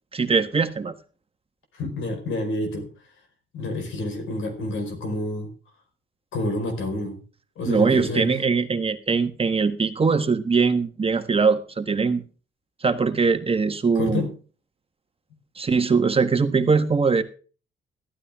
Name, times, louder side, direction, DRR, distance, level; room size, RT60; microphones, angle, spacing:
voice 1, 0.1-0.9 7.6-12.2 12.8-14.2 15.6-17.2, right 4 dB, 30° right, 8 dB, 1.4 m, -21 dB
voice 2, 1.7-2.9 3.5-5.5 6.3-7.2 7.6-8.3 13.9-14.3, left 2 dB, 75° left, 5 dB, 4.8 m, -28 dB
14.5 x 12.5 x 3.6 m, 0.37 s
cardioid pair, 90°, 20 cm